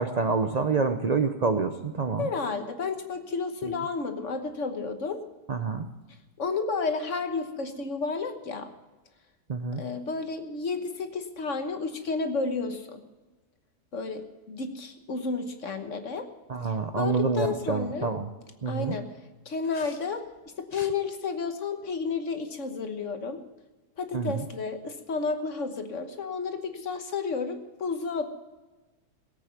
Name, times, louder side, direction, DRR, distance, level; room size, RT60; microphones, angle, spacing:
voice 1, 0.0-2.3 3.6-3.8 5.5-5.9 9.5-9.8 16.5-18.3 18.6-19.0 20.7-20.8 24.1-24.4, right 4 dB, 60° right, 7 dB, 0.4 m, -27 dB
voice 2, 2.2-5.2 6.4-8.7 9.7-13.0 13.9-16.3 16.6-18.1 18.7-19.1 19.4-20.3 20.6-23.4 24.0-28.3, left 4 dB, 50° left, 7 dB, 1.4 m, -31 dB
17.5 x 8.7 x 7.0 m, 1.2 s
omnidirectional pair, 1.8 m